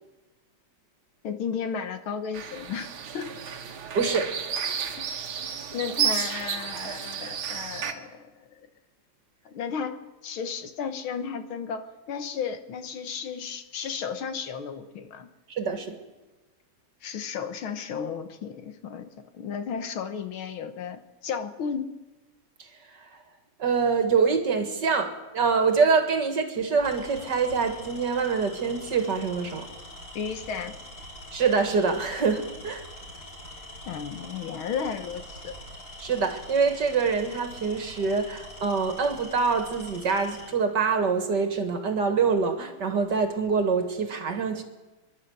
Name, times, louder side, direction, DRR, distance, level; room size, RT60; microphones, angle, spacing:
voice 1, 1.2-3.3 5.7-8.6 9.5-15.3 17.0-21.9 30.2-30.8 33.9-35.5, left 6 dB, 70° left, 1.9 m, -34 dB
sound 1, 2.3-7.9, right 8 dB, 70° right, 2.0 m, -32 dB
voice 2, 3.9-4.3 15.5-16.0 22.6-22.7 23.6-29.7 31.3-32.8 36.0-44.6, right 5 dB, 50° right, 2.2 m, -25 dB
Tools, 25.6-25.9 26.7-40.5, left 1 dB, 45° left, 5.6 m, -44 dB
29.5 x 11.5 x 7.8 m
omnidirectional pair, 2.4 m